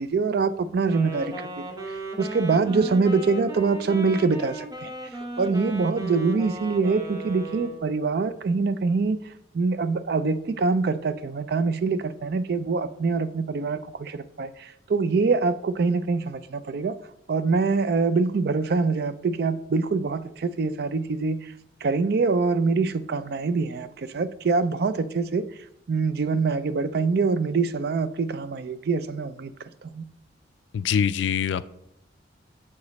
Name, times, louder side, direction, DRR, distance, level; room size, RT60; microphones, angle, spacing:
voice 1, 0.0-1.5 2.2-4.9 5.4-9.2 9.5-17.0 17.3-21.5 21.8-25.4 25.9-29.5 29.8-30.1, right 4 dB, 55° right, 13 dB, 0.4 m, -24 dB
Wind instrument woodwind instrument, 0.8-8.0, right 2 dB, 20° right, 0.8 m, -37 dB
voice 2, 30.7-31.6, left 7 dB, 75° left, 15 dB, 0.3 m, -24 dB
7.1 x 4.9 x 4.1 m, 0.78 s
head